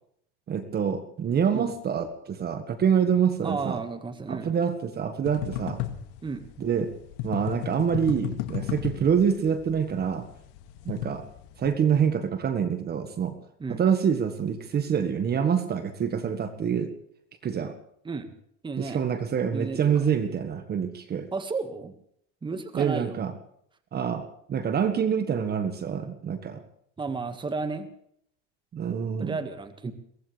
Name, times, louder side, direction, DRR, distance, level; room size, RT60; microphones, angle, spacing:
voice 1, 0.5-3.8 4.3-5.8 6.6-6.9 7.2-10.3 10.8-11.2 11.6-13.3 13.7-16.9 17.4-17.7 18.8-21.3 22.7-23.3 23.9-26.6 28.7-29.4, right 7 dB, 30° right, 9 dB, 1.6 m, -26 dB
voice 2, 3.4-4.5 6.2-6.5 13.6-13.8 18.1-18.3 18.6-19.0 19.5-19.9 21.3-21.9 22.4-23.2 27.0-27.9 29.2-29.9, right 4 dB, 15° right, 9 dB, 1.7 m, -33 dB
sound 1, 5.3-11.7, left 13 dB, 70° left, 2.1 m, -35 dB
23.0 x 18.0 x 3.4 m, 0.68 s
supercardioid pair, 130°, 32 cm